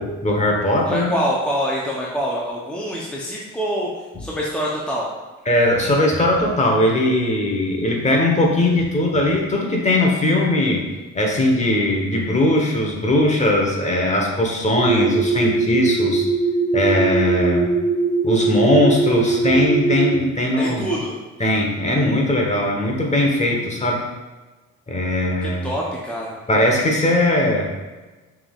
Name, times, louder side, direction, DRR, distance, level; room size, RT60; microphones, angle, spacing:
voice 1, 0.0-1.1 5.5-10.9 11.1-16.3 16.7-17.7 18.2-20.9 21.4-24.1 24.9-25.7 26.5-27.7, left 1 dB, 25° left, 0 dB, 1.0 m, -19 dB
voice 2, 0.9-3.9 4.2-5.1 20.6-21.2 25.4-26.3, equal, 5° left, -5 dB, 0.7 m, -25 dB
sound 1, 14.8-20.1, right 4 dB, 90° right, 0.6 m, -21 dB
5.7 x 3.6 x 2.4 m, 1.2 s
cardioid pair, 90°, 30 cm